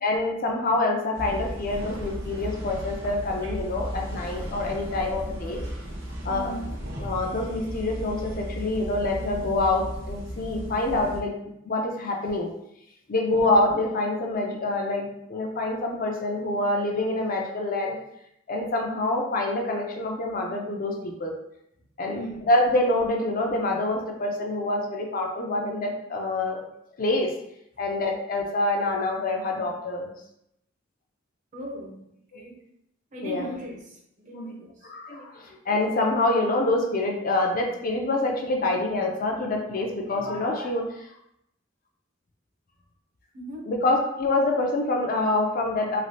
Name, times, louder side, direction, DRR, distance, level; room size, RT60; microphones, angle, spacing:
voice 1, 0.0-5.6 6.2-6.5 7.0-11.3 11.7-12.5 13.1-18.0 18.5-21.3 22.0-22.2 22.5-26.6 27.0-27.3 27.8-30.1 32.3-32.6 33.2-33.4 34.9-41.1 43.7-46.0, left 2 dB, 45° left, 1 dB, 0.5 m, -26 dB
sound 1, 1.1-11.2, equal, 70° right, 0.8 m, -35 dB
voice 2, 6.2-6.7 22.1-22.4 31.5-32.0 32.3-32.5 33.1-34.9 43.3-43.7, equal, 40° right, -1 dB, 0.7 m, -38 dB
3.1 x 2.4 x 2.7 m, 0.78 s
head